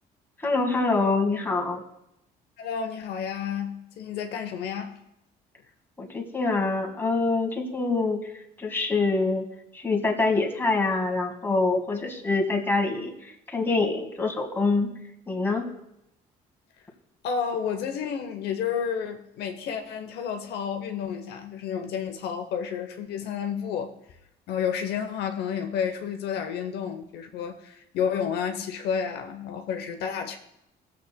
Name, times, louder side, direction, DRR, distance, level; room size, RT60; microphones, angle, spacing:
voice 1, 0.4-1.8 6.0-8.3 8.6-9.5 9.7-14.9 15.3-15.7, left 3 dB, 15° left, 1.7 m, -25 dB
voice 2, 2.6-4.9 17.2-23.9 24.5-30.4, left 7 dB, 75° left, 0.8 m, -31 dB
19.5 x 7.3 x 2.2 m
cardioid pair, 110°, 17 cm